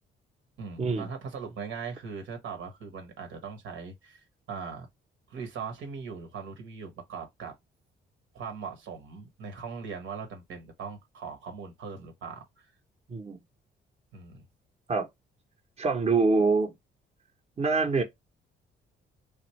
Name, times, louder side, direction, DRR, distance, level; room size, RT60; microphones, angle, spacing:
voice 1, 0.6-4.9 5.3-7.5 8.3-12.7 14.1-14.4, right 5 dB, 80° right, 1.1 m, -40 dB
voice 2, 15.8-16.7 17.6-18.0, right 4 dB, 30° right, 0.9 m, -25 dB
3.4 x 2.4 x 3.0 m
cardioid pair, 90°, 20 cm